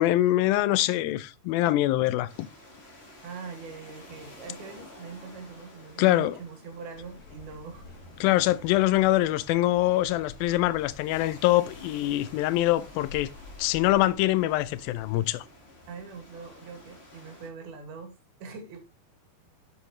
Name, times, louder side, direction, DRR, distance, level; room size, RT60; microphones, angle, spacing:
voice 1, 0.0-2.5 6.0-6.4 8.2-13.3 13.6-15.5, left 16 dB, 80° left, 2.2 m, -24 dB
sound 1, 2.3-17.5, left 1 dB, 20° left, 1.7 m, -51 dB
voice 2, 3.2-7.9 8.2-8.4 15.9-18.2 18.4-18.8, right 5 dB, 75° right, 4.0 m, -42 dB
sound 2, 6.9-15.2, left 3 dB, 45° left, 2.7 m, -49 dB
8.5 x 7.2 x 3.1 m
omnidirectional pair, 4.4 m